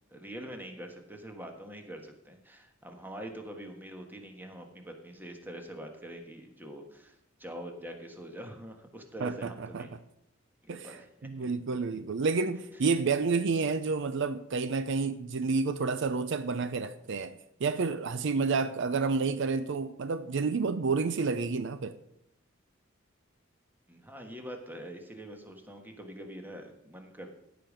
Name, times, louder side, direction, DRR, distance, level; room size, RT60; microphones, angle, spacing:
voice 1, 0.1-9.9 10.6-11.3 23.9-27.3, equal, 10° right, 1.4 m, -44 dB
voice 2, 9.2-9.9 10.7-11.0 11.2-22.0, right 4 dB, 65° right, 0.5 m, -30 dB
15.0 x 5.1 x 6.4 m
head